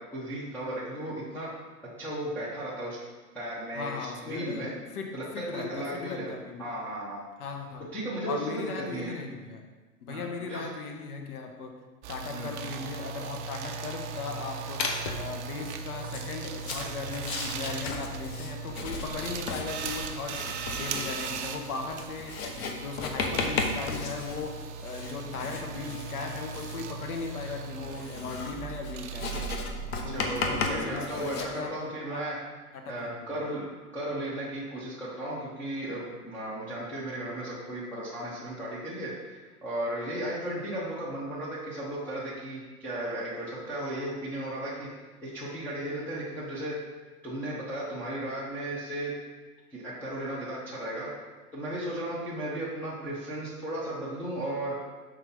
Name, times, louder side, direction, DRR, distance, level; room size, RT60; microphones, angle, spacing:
voice 1, 0.0-1.5 2.0-3.0 3.3-4.7 5.1-6.3 6.6-7.2 7.9-9.1 10.1-10.6 12.3-12.5 30.1-32.4 32.9-33.6 33.9-44.9 45.2-46.7 47.2-49.1 49.7-51.1 51.5-54.8, right 1 dB, 5° left, -10 dB, 0.5 m, -35 dB
voice 2, 3.7-6.7 7.4-7.9 8.2-9.6 10.0-11.7 12.1-22.5 22.8-29.5 30.0-32.3 32.7-33.5, left 4 dB, 70° left, 3 dB, 1.3 m, -38 dB
sound 1, 12.0-31.0, right 6 dB, 50° right, 0.6 m, -38 dB
Writing, 14.8-15.3 16.0-31.5, left 4 dB, 40° left, 0.8 m, -35 dB
5.7 x 3.4 x 5.4 m, 1.3 s
hypercardioid pair, 130°, 46 cm